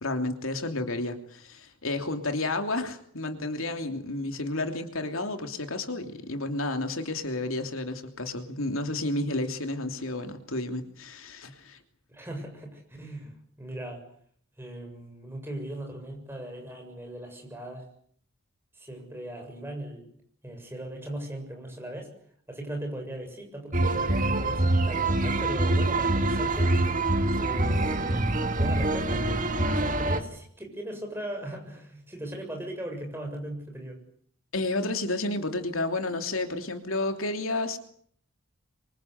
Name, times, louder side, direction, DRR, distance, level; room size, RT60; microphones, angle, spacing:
voice 1, 0.0-11.8 34.5-37.8, left 2 dB, 75° left, 6 dB, 3.0 m, -31 dB
voice 2, 12.1-14.0 14.6-17.9 18.7-20.1 20.4-22.1 22.5-26.8 27.4-28.3 28.5-29.3 29.8-34.0, right 1 dB, 10° right, 2 dB, 7.4 m, -39 dB
sound 1, 23.7-30.2, right 2 dB, 40° right, 2.1 m, -25 dB
26.5 x 25.0 x 8.1 m, 0.62 s
head